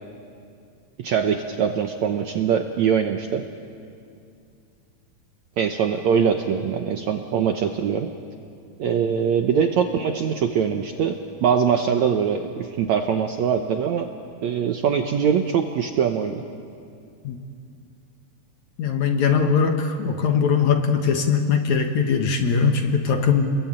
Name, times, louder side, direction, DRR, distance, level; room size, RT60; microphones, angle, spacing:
voice 1, 1.0-3.4 5.6-8.1 8.8-14.1 14.4-16.4, right 7 dB, 70° right, 5 dB, 1.8 m, -22 dB
voice 2, 18.8-23.6, left 6 dB, 60° left, 5 dB, 2.4 m, -21 dB
30.0 x 21.5 x 8.9 m, 2.4 s
omnidirectional pair, 4.4 m